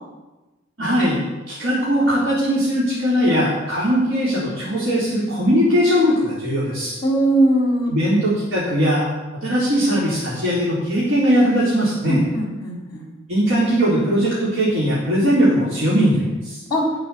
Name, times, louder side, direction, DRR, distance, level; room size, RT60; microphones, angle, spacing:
voice 1, 0.8-1.2 1.5-7.0 7.9-9.0 9.4-12.2 13.3-16.6, equal, 80° right, -8 dB, 4.0 m, -19 dB
voice 2, 7.0-7.9 12.1-13.1 16.7-16.9, right 1 dB, 20° left, -1 dB, 3.9 m, -20 dB
18.0 x 6.6 x 7.0 m, 1.1 s
head